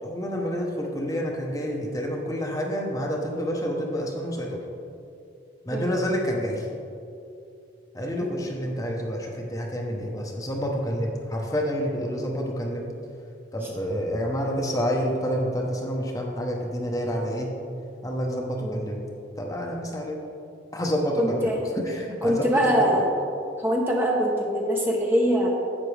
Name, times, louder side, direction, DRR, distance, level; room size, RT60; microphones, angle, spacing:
voice 1, 0.0-4.6 5.7-6.6 7.9-12.9 13.5-17.5 18.0-19.0 19.4-20.2 20.7-21.5 21.9-22.5 22.8-22.9, equal, 20° left, 0 dB, 0.9 m, -28 dB
voice 2, 18.6-19.0 21.2-21.6 22.2-23.1 23.6-25.5, equal, 10° right, -1 dB, 0.8 m, -23 dB
11.0 x 8.3 x 3.4 m, 2.6 s
head